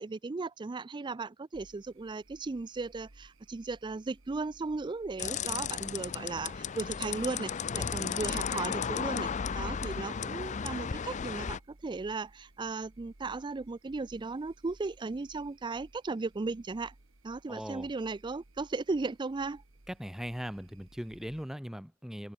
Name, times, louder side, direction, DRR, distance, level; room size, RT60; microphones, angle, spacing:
voice 1, 0.0-16.9 17.2-19.6, right 3 dB, 20° right, 0.4 m, -36 dB
sound 1, 1.5-21.4, right 2 dB, 70° right, 1.9 m, -59 dB
sound 2, 5.2-11.6, left 7 dB, 35° left, 0.5 m, -34 dB
voice 2, 17.5-17.9 19.9-22.3, equal, ahead, 1.7 m, -39 dB
open air
head